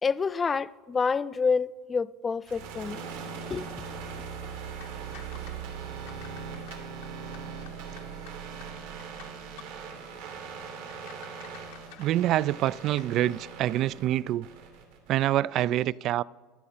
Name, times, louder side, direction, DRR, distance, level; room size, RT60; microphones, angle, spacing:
voice 1, 0.0-3.0 3.5-3.7, left 5 dB, 25° left, 0.4 m, -28 dB
sound 1, 2.4-15.2, right 6 dB, 85° right, 3.1 m, -40 dB
sound 2, 4.4-13.1, left 10 dB, 80° left, 1.5 m, -53 dB
voice 2, 12.0-14.5 15.1-16.2, right 13 dB, 50° right, 0.3 m, -26 dB
23.5 x 8.4 x 4.2 m
supercardioid pair, 105°, 0 cm